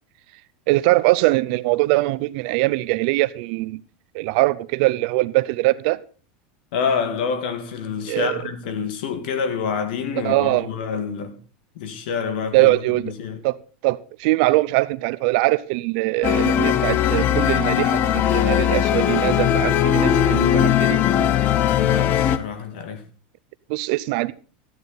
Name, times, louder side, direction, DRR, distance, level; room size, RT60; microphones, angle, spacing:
voice 1, 0.7-3.8 4.1-6.0 8.1-8.4 10.1-10.7 12.5-13.1 13.4-13.6 13.8-21.0 23.7-24.3, right 20 dB, 55° right, 0.6 m, -22 dB
voice 2, 6.7-11.4 11.8-12.8 13.2-13.4 21.8-23.0, left 6 dB, 70° left, 2.0 m, -27 dB
sound 1, 16.2-22.4, left 10 dB, 35° left, 0.6 m, -19 dB
12.5 x 9.4 x 4.1 m
supercardioid pair, 145°, 5 cm